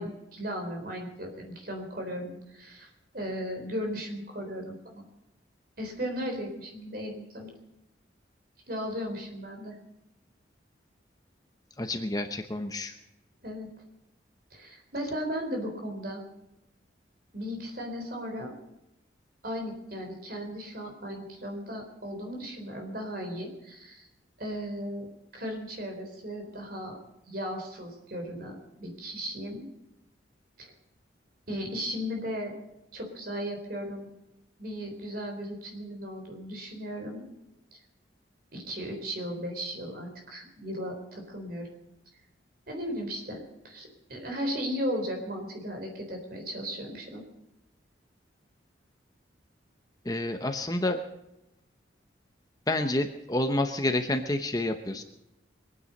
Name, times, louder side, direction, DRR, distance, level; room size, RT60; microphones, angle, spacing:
voice 1, 0.0-5.1 5.8-7.5 8.7-9.8 13.4-13.7 14.5-16.2 17.3-18.6 19.4-24.1 24.4-27.0 27.3-29.7 30.6-30.7 31.5-32.5 32.9-34.1 34.6-37.3 38.5-41.7 42.7-47.2, equal, 50° right, 3 dB, 3.9 m, -36 dB
voice 2, 11.8-13.0 50.0-51.0 52.7-55.0, left 1 dB, 20° left, 6 dB, 0.8 m, -29 dB
23.5 x 9.6 x 5.3 m, 0.90 s
head